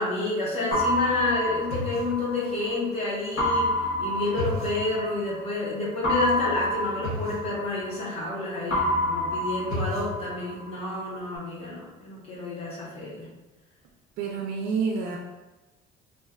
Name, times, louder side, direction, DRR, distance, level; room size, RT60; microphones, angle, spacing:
voice 1, 0.0-13.3, left 2 dB, 35° left, -5 dB, 0.9 m, -29 dB
sound 1, 0.7-2.8 3.4-5.4 6.0-8.3 8.7-10.8, left 1 dB, 75° left, 0.8 m, -28 dB
voice 2, 14.2-15.2, right 5 dB, 60° right, 0 dB, 0.4 m, -28 dB
2.5 x 2.2 x 3.4 m, 1.1 s
cardioid pair, 170°, 17 cm